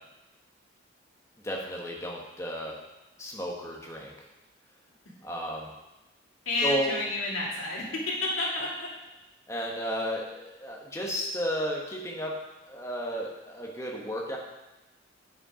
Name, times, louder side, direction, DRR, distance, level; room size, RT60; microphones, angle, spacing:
voice 1, 1.4-2.8 3.2-4.1 5.2-5.7 6.6-6.9 9.5-12.4 12.6-14.4, equal, 15° left, -1 dB, 1.2 m, -33 dB
voice 2, 6.5-8.9, left 2 dB, 90° left, -4 dB, 2.4 m, -30 dB
8.5 x 5.4 x 4.9 m, 1.0 s
head